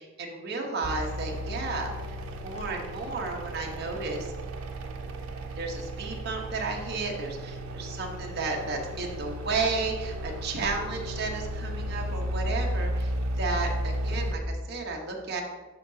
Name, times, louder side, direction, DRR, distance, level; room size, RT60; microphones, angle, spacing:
voice 1, 0.0-1.9 2.4-4.3 5.6-15.4, right 3 dB, 50° right, 0 dB, 1.1 m, -33 dB
sound 1, 0.8-14.3, right 1 dB, 85° right, 0.7 m, -34 dB
11.0 x 4.7 x 2.8 m, 1.3 s
head